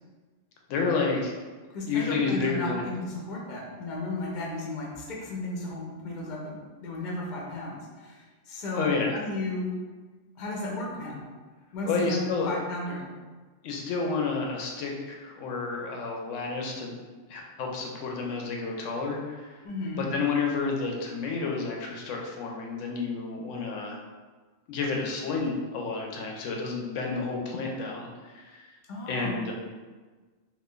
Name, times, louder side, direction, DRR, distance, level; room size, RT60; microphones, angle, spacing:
voice 1, 0.7-1.3 1.9-2.8 8.7-9.2 11.8-12.5 13.6-16.9 17.3-19.6 20.0-24.0 24.7-28.7 29.1-29.5, left 4 dB, 85° left, 0 dB, 0.9 m, -30 dB
voice 2, 1.7-9.7 10.4-11.2 11.7-12.2 12.5-13.1 19.6-20.1 28.9-29.5, left 2 dB, 45° left, -2 dB, 0.7 m, -34 dB
2.5 x 2.5 x 3.6 m, 1.3 s
omnidirectional pair, 1.2 m